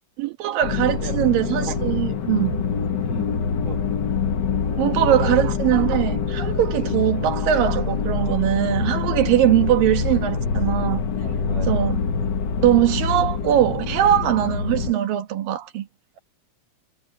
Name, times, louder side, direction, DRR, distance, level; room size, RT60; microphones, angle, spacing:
voice 1, 0.2-2.6 4.8-11.0 11.7-12.0 12.6-15.9, right 12 dB, 80° right, 3.2 m, -21 dB
sound 1, 0.6-14.9, left 6 dB, 70° left, 1.0 m, -25 dB
voice 2, 0.8-1.2 3.0-3.8 4.6-5.4 11.2-12.3, right 3 dB, 55° right, 8.6 m, -36 dB
omnidirectional pair, 3.9 m